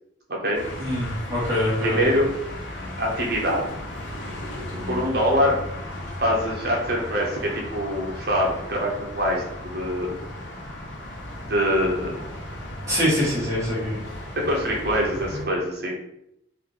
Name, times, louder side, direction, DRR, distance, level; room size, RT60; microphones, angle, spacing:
sound 1, 0.5-15.4, left 1 dB, 65° left, 1.0 m, -36 dB
voice 1, 0.8-2.1 12.9-14.0, equal, 15° right, -8 dB, 1.5 m, -24 dB
voice 2, 1.8-2.3 3.0-3.7 4.9-5.6 6.2-9.4 9.7-10.2 11.5-12.3 14.4-15.9, equal, 55° right, -2 dB, 1.0 m, -24 dB
3.4 x 2.6 x 3.9 m, 0.78 s
head